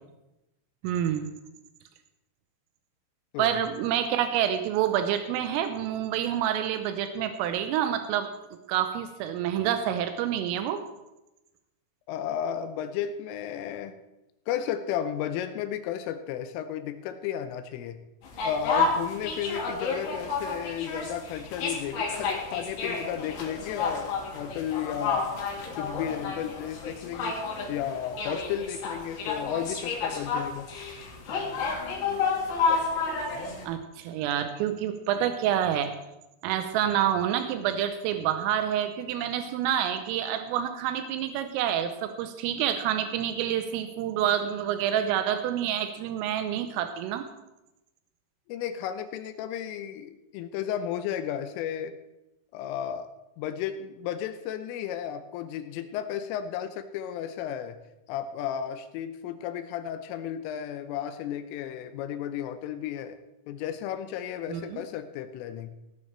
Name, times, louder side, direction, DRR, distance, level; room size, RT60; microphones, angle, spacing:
voice 1, 0.8-1.3 3.4-8.3 8.7-10.8 33.6-35.9 36.4-47.3 64.5-64.8, right 10 dB, 85° right, 8 dB, 3.4 m, -28 dB
voice 2, 12.1-14.0 14.5-18.0 18.4-25.3 25.8-27.4 27.7-30.7 48.5-52.0 52.5-53.1 53.4-57.8 58.1-63.2 63.5-65.7, left 9 dB, 85° left, 10 dB, 3.3 m, -33 dB
sound 1, 18.2-33.7, left 4 dB, 60° left, 4.1 m, -31 dB
17.5 x 9.9 x 4.5 m, 0.95 s
omnidirectional pair, 5.8 m